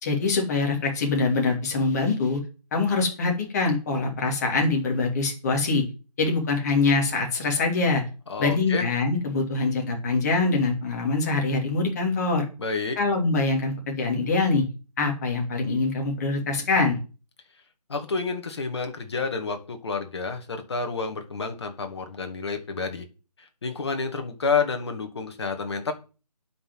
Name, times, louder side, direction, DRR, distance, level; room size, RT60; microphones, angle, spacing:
voice 1, 0.0-2.4 2.7-5.8 6.2-8.0 8.4-12.5 13.0-14.6 15.0-17.0, left 3 dB, 25° left, 1 dB, 2.9 m, -24 dB
voice 2, 8.3-8.9 12.6-13.0 17.9-23.0 23.4-25.9, left 4 dB, 40° left, 5 dB, 2.4 m, -29 dB
9.5 x 6.1 x 7.7 m, 0.34 s
figure-of-eight pair, 160°, 20 cm